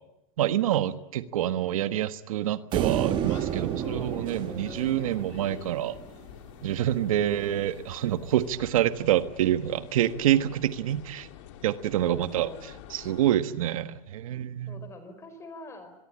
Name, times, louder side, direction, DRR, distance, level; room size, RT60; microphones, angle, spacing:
voice 1, 0.4-6.0 6.6-11.3 11.6-12.5 12.9-14.8, right 12 dB, 70° right, 11 dB, 1.4 m, -27 dB
sound 1, 2.7-13.3, left 11 dB, 55° left, 2.7 m, -47 dB
sound 2, 2.7-6.1, right 10 dB, 25° right, 1.5 m, -31 dB
voice 2, 3.8-4.9 7.1-7.6 12.0-12.7 14.7-15.9, left 3 dB, 15° left, 9 dB, 5.0 m, -44 dB
25.0 x 22.5 x 8.7 m, 0.87 s
supercardioid pair, 150°, 18 cm